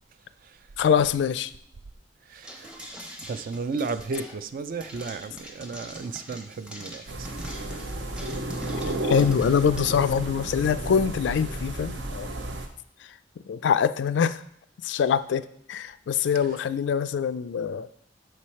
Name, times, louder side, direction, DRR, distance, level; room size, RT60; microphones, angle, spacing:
voice 1, 0.8-1.5 8.9-12.3 13.5-14.4 14.8-17.9, left 7 dB, 70° left, 13 dB, 0.3 m, -24 dB
voice 2, 2.3-2.7 3.3-7.0 8.3-8.4, right 4 dB, 50° right, 11 dB, 0.4 m, -33 dB
sound 1, 2.4-9.8, equal, 5° right, 0.7 m, -43 dB
sound 2, 7.1-12.7, right 1 dB, 75° right, 0.7 m, -32 dB
6.0 x 4.7 x 4.3 m, 0.67 s
head